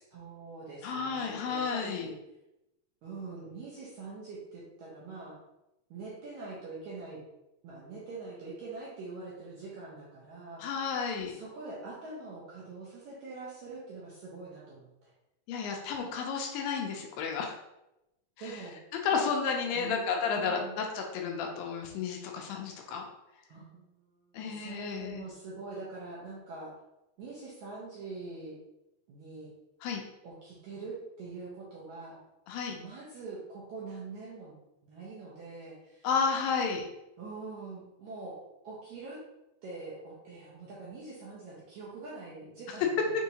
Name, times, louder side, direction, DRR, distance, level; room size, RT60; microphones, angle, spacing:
voice 1, 0.1-2.2 3.0-5.4 5.9-7.2 7.6-10.7 11.3-15.1 18.4-18.8 19.1-19.3 19.7-20.1 20.3-20.8 23.5-26.7 27.2-28.6 29.1-29.5 30.2-32.2 32.7-34.6 34.8-36.1 37.2-39.2 39.6-43.1, right 3 dB, 70° right, -6 dB, 1.8 m, -44 dB
voice 2, 0.8-2.1 10.6-11.4 15.5-17.5 18.5-18.6 19.0-23.0 24.3-25.2 29.8-30.0 32.5-32.8 36.0-36.8, left 5 dB, 80° left, 2 dB, 2.2 m, -32 dB
6.1 x 2.7 x 2.8 m, 0.91 s
omnidirectional pair, 4.2 m